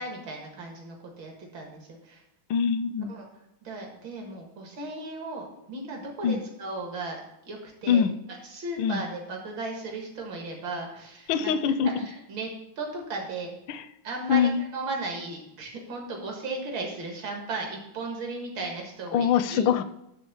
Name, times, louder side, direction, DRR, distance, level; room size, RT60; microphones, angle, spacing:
voice 1, 0.0-2.2 3.1-3.3 3.6-7.2 7.5-8.1 8.4-12.5 12.8-13.5 14.0-19.7, right 3 dB, 80° right, 0 dB, 2.4 m, -36 dB
voice 2, 2.5-3.1 6.2-6.4 7.9-8.1 8.8-9.0 11.3-11.9 13.7-13.8 14.3-14.6 19.1-19.8, left 8 dB, 80° left, 13 dB, 1.3 m, -23 dB
10.5 x 3.7 x 7.1 m, 0.84 s
omnidirectional pair, 2.1 m